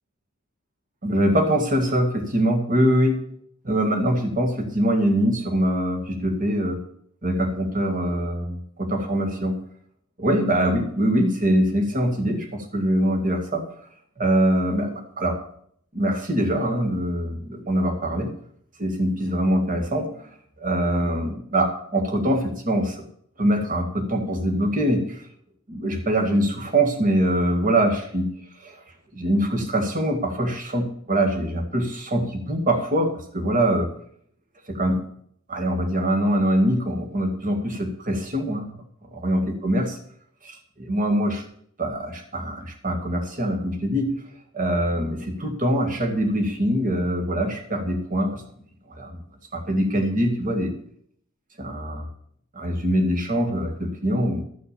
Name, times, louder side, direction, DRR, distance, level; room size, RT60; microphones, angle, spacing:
voice 1, 1.0-3.3 3.6-6.8 7.2-9.6 10.2-13.6 14.2-15.4 15.9-18.3 18.8-20.1 20.6-23.0 23.4-25.2 25.7-28.3 28.6-28.8 29.1-33.9 34.7-35.0 35.5-38.7 39.1-40.0 40.4-41.4 41.8-44.1 44.5-48.4 48.9-49.2 49.5-50.7 51.6-52.0 52.5-54.4, right 1 dB, 40° right, 3 dB, 2.1 m, -23 dB
13.0 x 6.3 x 7.0 m, 0.65 s
head